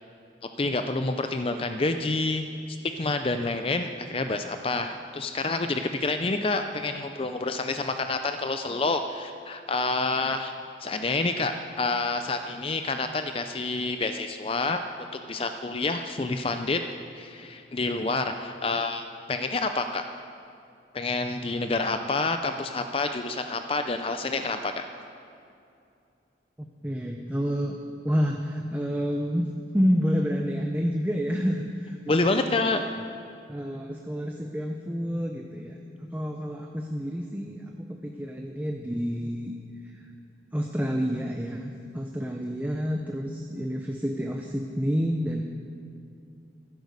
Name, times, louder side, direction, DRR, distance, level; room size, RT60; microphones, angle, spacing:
voice 1, 0.6-2.5 3.0-10.5 10.8-16.8 17.1-19.0 19.3-20.0 20.9-24.8 32.1-32.8, left 3 dB, 30° left, 7 dB, 0.5 m, -28 dB
voice 2, 26.8-27.8 28.0-32.0 32.5-32.8 33.5-39.5 40.5-45.4, equal, 10° right, 2 dB, 0.7 m, -29 dB
14.5 x 10.5 x 6.7 m, 2.5 s
head